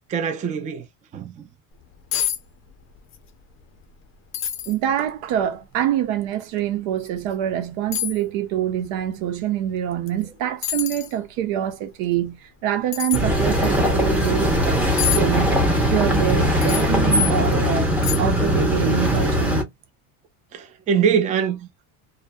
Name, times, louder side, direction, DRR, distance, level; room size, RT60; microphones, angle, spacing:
voice 1, 0.1-0.9 1.1-1.5 20.5-21.7, right 7 dB, 20° right, 0.4 m, -23 dB
sound 1, 1.7-1.8 2.1-2.4 2.7-3.2 3.6-3.7 4.3-4.8 5.4-5.5 7.0-7.1 7.9-8.2 10.1-10.2 10.6-11.1 12.9-13.2 15.0-15.2 16.6-16.9 17.4-17.5 18.0-18.4 18.7-18.8, left 10 dB, 35° left, 0.5 m, -26 dB
voice 2, 4.7-15.6 15.9-19.7, right 11 dB, 85° right, 0.8 m, -25 dB
sound 2, 13.1-19.6, equal, 5° right, 0.7 m, -20 dB
2.6 x 2.1 x 2.2 m
cardioid pair, 140°, 38 cm